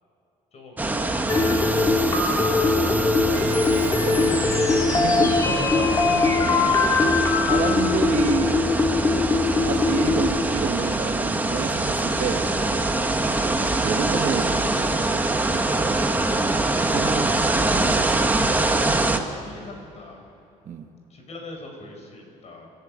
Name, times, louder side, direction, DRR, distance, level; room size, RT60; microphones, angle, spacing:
voice 1, 0.5-1.5 3.9-4.5 6.6-6.9 19.3-20.2 21.1-22.7, left 2 dB, 45° left, 3 dB, 5.3 m, -42 dB
sound 1, 0.8-19.2, right 2 dB, 10° right, 1.4 m, -24 dB
sound 2, 1.3-10.6, left 3 dB, 20° left, 2.6 m, -21 dB
voice 2, 5.0-6.0 7.4-8.6 9.6-12.5 13.2-14.7 15.1-15.4 16.9-17.6 20.7-20.9, right 6 dB, 50° right, 6 dB, 1.5 m, -29 dB
29.5 x 12.0 x 8.8 m, 2.8 s
cardioid pair, 135°, 15 cm